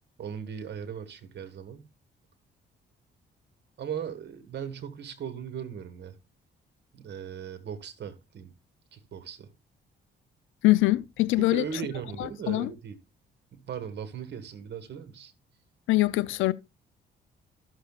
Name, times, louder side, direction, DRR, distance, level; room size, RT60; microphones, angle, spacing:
voice 1, 0.2-1.8 3.8-6.2 6.9-8.5 8.9-9.5 11.4-13.0 13.5-15.3, right 8 dB, 60° right, 1.6 m, -38 dB
voice 2, 10.6-11.6 12.2-12.7 15.9-16.5, left 18 dB, 90° left, 0.5 m, -23 dB
14.0 x 6.4 x 2.4 m
cardioid pair, 90°, 20 cm